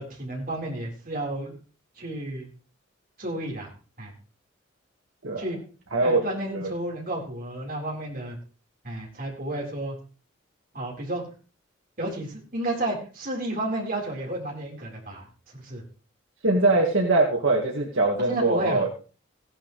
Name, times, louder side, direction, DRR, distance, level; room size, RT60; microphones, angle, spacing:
voice 1, 0.0-1.5 2.0-2.5 3.2-3.7 4.0-4.1 5.4-5.6 6.0-8.4 8.8-10.0 10.7-11.2 12.0-15.3 15.5-15.8 18.3-18.9, right 1 dB, 45° right, -1 dB, 4.3 m, -31 dB
voice 2, 16.4-18.9, right 2 dB, 80° right, 0 dB, 2.0 m, -22 dB
15.5 x 11.0 x 3.2 m, 0.37 s
head